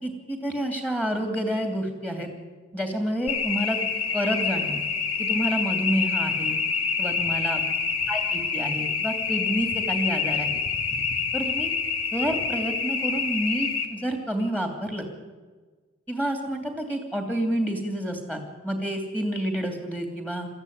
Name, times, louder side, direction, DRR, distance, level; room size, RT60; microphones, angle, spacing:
voice 1, 0.0-2.3 2.7-3.8 4.1-4.8 5.2-6.6 7.0-7.6 8.1-10.5 11.3-11.7 12.1-15.1 16.1-20.5, right 1 dB, 5° left, 4 dB, 2.9 m, -29 dB
sound 1, 3.3-13.9, left 5 dB, 85° left, 2.5 m, -27 dB
22.5 x 14.5 x 9.5 m, 1.4 s
head